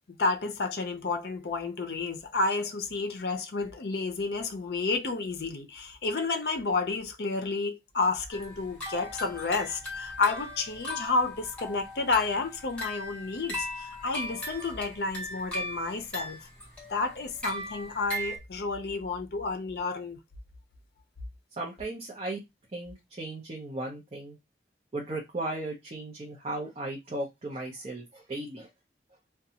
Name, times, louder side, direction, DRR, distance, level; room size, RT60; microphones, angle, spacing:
voice 1, 0.1-16.4 16.9-20.2, left 3 dB, 65° left, 0.5 m, -30 dB
Music Box phrase, 8.3-18.4, equal, 5° left, 0.7 m, -38 dB
voice 2, 21.6-22.4 22.7-24.4 24.9-28.7, right 2 dB, 35° right, 0.6 m, -36 dB
2.5 x 2.2 x 2.8 m
head